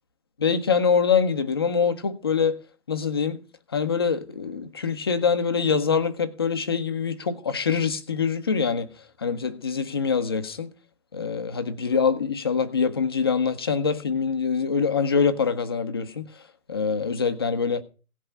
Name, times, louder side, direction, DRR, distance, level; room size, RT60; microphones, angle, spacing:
voice 1, 0.4-2.6 2.9-3.4 3.7-8.9 9.2-10.7 11.1-16.2 16.7-17.8, left 6 dB, 20° left, 0.5 m, -24 dB
17.0 x 5.7 x 6.6 m
figure-of-eight pair, 145°, 43 cm